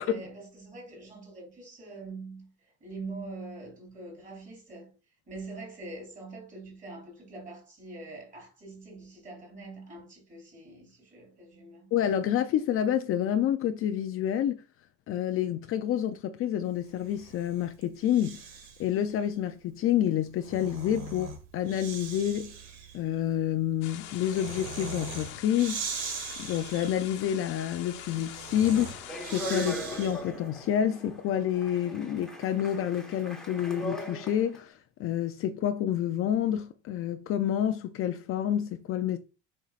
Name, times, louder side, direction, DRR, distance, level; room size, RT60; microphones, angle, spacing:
voice 1, 0.0-4.9 5.3-11.9, right 3 dB, 25° right, 3.7 m, -44 dB
voice 2, 11.9-14.6 15.1-18.4 18.8-22.5 22.9-26.1 26.4-39.2, left 10 dB, 45° left, 0.5 m, -28 dB
Breathing, 16.9-18.9 20.2-30.4, right 5 dB, 70° right, 1.9 m, -41 dB
sound 1, 23.8-29.7, left 12 dB, 80° left, 1.3 m, -44 dB
Speech, 28.7-34.6, left 1 dB, ahead, 1.3 m, -39 dB
7.3 x 5.4 x 2.5 m
cardioid pair, 155°, 32 cm